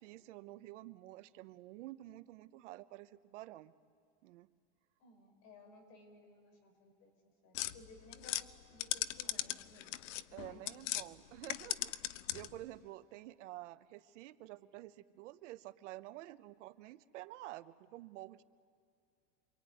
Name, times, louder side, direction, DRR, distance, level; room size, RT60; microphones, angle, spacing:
voice 1, 0.0-3.7 4.2-4.5 10.3-18.4, right 16 dB, 75° right, 13 dB, 1.0 m, -50 dB
voice 2, 5.0-7.1 7.4-9.9 10.3-11.0, left 2 dB, 45° left, 4 dB, 4.9 m, -59 dB
sound 1, 7.5-11.1 11.4-12.6, left 14 dB, 85° left, 0.8 m, -39 dB
27.0 x 23.5 x 9.4 m, 2.4 s
supercardioid pair, 170°, 36 cm